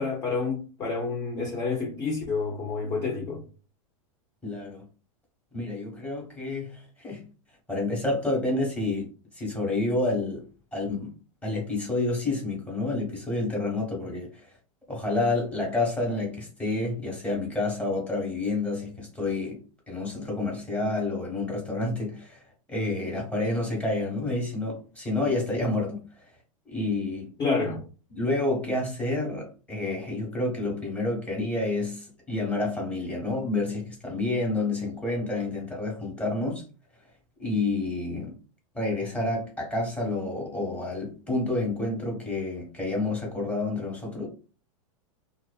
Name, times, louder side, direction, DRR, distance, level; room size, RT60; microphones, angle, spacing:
voice 1, 0.0-3.4 27.4-27.8, left 4 dB, 25° left, 0.6 m, -29 dB
voice 2, 4.4-4.8 5.5-7.3 7.7-9.1 9.4-10.4 10.7-11.1 11.4-14.4 14.9-19.6 19.9-22.4 22.7-26.0 26.6-27.3 28.1-36.6 37.4-38.3 38.7-44.3, left 2 dB, 5° left, 1.2 m, -29 dB
2.5 x 2.4 x 2.3 m
hypercardioid pair, 125°, 17 cm